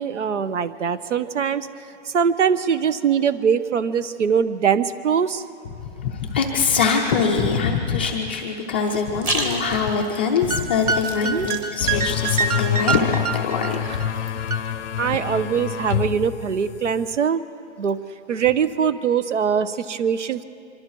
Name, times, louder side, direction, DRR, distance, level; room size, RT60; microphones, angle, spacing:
voice 1, 0.0-1.7 2.1-5.4 11.2-11.5 15.0-17.4 17.8-18.0 18.3-20.4, right 7 dB, 85° right, 14 dB, 1.1 m, -22 dB
voice 2, 5.8-14.1, left 5 dB, 10° left, -2 dB, 0.4 m, -23 dB
sound 1, 8.9-15.0, right 1 dB, 10° right, 1.0 m, -34 dB
sound 2, 9.4-10.1 10.4-14.1 14.4-14.6, right 5 dB, 35° right, 0.6 m, -26 dB
sound 3, 11.8-17.2, left 9 dB, 85° left, 0.7 m, -27 dB
25.0 x 23.5 x 4.7 m, 2.4 s
hypercardioid pair, 165°, 35 cm